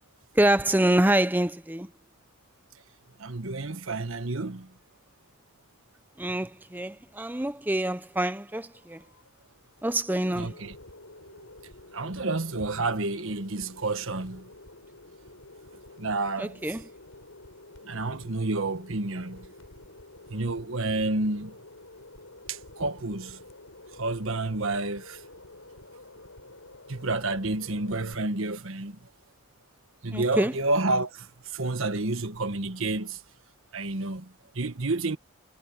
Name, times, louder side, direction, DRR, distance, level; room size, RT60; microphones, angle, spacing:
voice 1, 0.3-1.9 6.2-9.0 9.8-10.6 16.4-16.9 30.1-30.5, right 1 dB, 10° right, 0.7 m, -26 dB
voice 2, 3.2-4.7 10.4-10.7 11.9-14.5 16.0-16.6 17.8-19.5 20.3-21.5 22.5-23.4 24.0-25.2 26.9-29.0 30.0-31.3 31.5-33.2 33.7-35.2, right 2 dB, 70° right, 1.4 m, -30 dB
sound 1, 8.5-28.1, left 2 dB, 80° left, 5.8 m, -50 dB
head